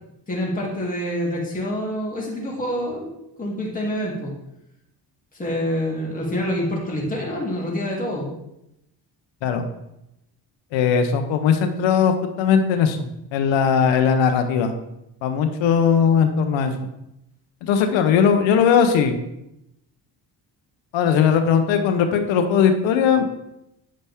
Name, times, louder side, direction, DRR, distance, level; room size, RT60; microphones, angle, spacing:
voice 1, 0.3-4.3 5.3-8.3, equal, 20° left, -5 dB, 2.7 m, -27 dB
voice 2, 10.7-14.7 15.2-16.7 17.6-19.2 20.9-23.2, left 7 dB, 85° left, 6 dB, 0.9 m, -19 dB
8.9 x 5.4 x 3.5 m, 0.84 s
cardioid pair, 75°, 45 cm